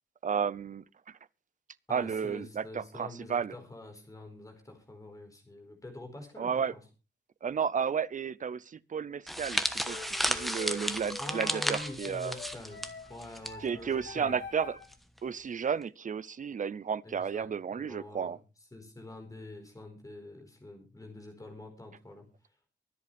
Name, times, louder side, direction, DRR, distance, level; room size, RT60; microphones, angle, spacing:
voice 1, 0.2-0.8 1.9-3.5 6.4-6.7 7.4-10.0 10.2-12.3 13.6-14.8 15.2-18.4, right 7 dB, 45° right, 0.6 m, -32 dB
voice 2, 1.9-6.8 11.2-14.3 17.0-18.4 18.7-22.2, left 1 dB, 20° left, 4.6 m, -46 dB
sound 1, 9.3-13.5 13.8-14.0 14.9-15.2, equal, ahead, 1.2 m, -33 dB
sound 2, 9.8-14.9, left 5 dB, 70° left, 3.4 m, -45 dB
24.0 x 8.3 x 3.5 m
wide cardioid pair, 175°, 19 cm